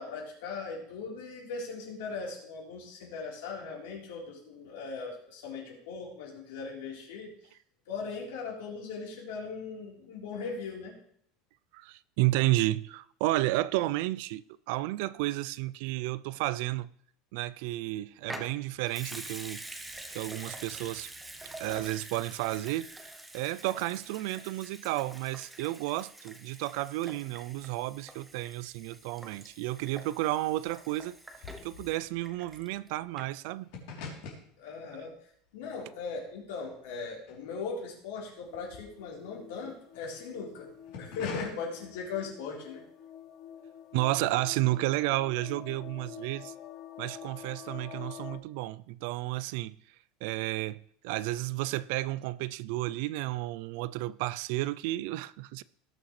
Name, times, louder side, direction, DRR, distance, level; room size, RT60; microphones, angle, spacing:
voice 1, 0.0-7.3 7.9-10.9 34.6-35.1 35.5-40.7 41.0-42.8, left 4 dB, 80° left, 3.7 m, -39 dB
voice 2, 11.7-16.9 17.3-19.6 20.1-21.1 21.6-22.9 23.3-31.2 31.6-33.7 43.9-46.5 47.0-49.7 50.2-55.6, right 17 dB, 60° right, 0.3 m, -32 dB
Water tap faucet / Sink (filling or washing) / Liquid, 18.2-32.9 33.2-33.3, right 2 dB, 5° right, 0.7 m, -46 dB
sound 1, 28.7-29.4 29.7-38.0 38.3-40.1 40.7-41.4, left 5 dB, 60° left, 3.3 m, -46 dB
sound 2, 38.5-48.4, left 10 dB, 35° left, 0.8 m, -48 dB
18.0 x 6.5 x 3.2 m
supercardioid pair, 165°, 0 cm